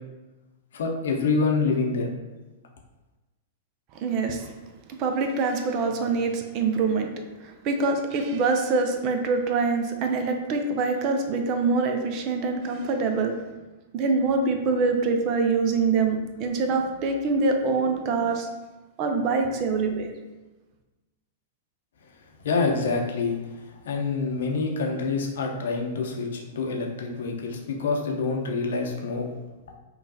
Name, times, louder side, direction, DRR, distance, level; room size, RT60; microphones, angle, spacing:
voice 1, 0.7-2.1 22.4-23.3 23.8-29.3, left 4 dB, 65° left, 1 dB, 0.7 m, -26 dB
voice 2, 4.0-4.5 5.0-7.1 7.4-13.4 13.9-18.5 19.0-20.1, right 4 dB, 40° right, 5 dB, 0.5 m, -25 dB
5.4 x 2.4 x 2.7 m, 1.1 s
figure-of-eight pair, 100°, 0 cm